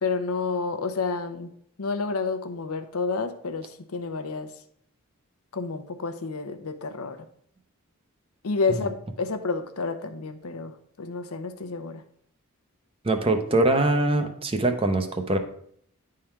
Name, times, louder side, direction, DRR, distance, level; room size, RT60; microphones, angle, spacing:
voice 1, 0.0-1.5 1.8-4.5 5.5-7.2 8.4-12.0, left 4 dB, 75° left, 7 dB, 0.7 m, -30 dB
voice 2, 13.0-15.4, right 2 dB, 25° right, 7 dB, 0.6 m, -23 dB
9.7 x 3.8 x 4.4 m, 0.66 s
head